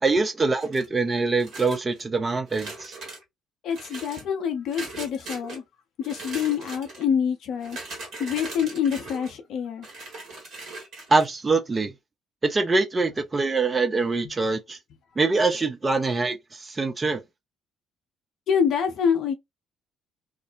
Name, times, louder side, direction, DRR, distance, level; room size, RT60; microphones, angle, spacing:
voice 1, 0.0-2.9 11.1-11.9 12.4-14.8 15.2-17.2, right 3 dB, 30° right, 0.6 m, -24 dB
sound 1, 0.6-1.0 1.4-2.0 2.5-3.2 3.7-4.2 4.7-5.6 6.0-7.0 7.6-9.3 9.8-11.3, right 3 dB, 55° right, 1.2 m, -39 dB
voice 2, 3.6-5.6 6.0-7.8 8.2-9.9 18.5-19.3, left 7 dB, 60° left, 0.6 m, -26 dB
2.5 x 2.1 x 2.4 m
figure-of-eight pair, 50°, 0 cm